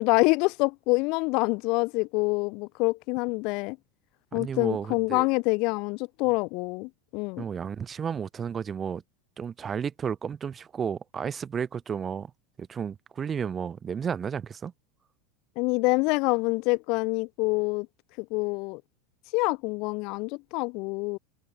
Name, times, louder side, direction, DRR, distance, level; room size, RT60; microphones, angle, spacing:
voice 1, 0.0-3.8 4.3-7.4 15.6-17.9 18.2-18.8 19.3-21.2, left 27 dB, 50° left, 0.4 m, -26 dB
voice 2, 4.3-5.3 7.4-9.0 9.4-12.3 12.6-14.7, right 7 dB, 25° right, 0.7 m, -32 dB
figure-of-eight pair, 80°, 0 cm